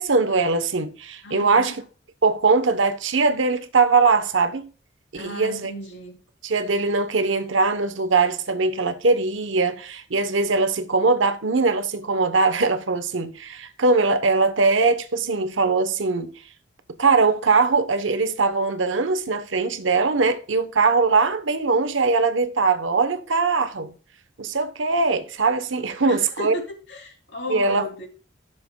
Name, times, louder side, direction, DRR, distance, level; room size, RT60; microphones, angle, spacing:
voice 1, 0.0-1.8 2.2-4.7 5.1-5.7 6.4-16.3 17.0-23.9 24.4-26.5 27.5-27.9, right 4 dB, 80° right, 1.0 m, -21 dB
voice 2, 1.2-1.7 5.1-6.2 26.0-26.6 26.9-28.1, equal, 65° left, 2.9 m, -35 dB
14.0 x 6.9 x 2.3 m
head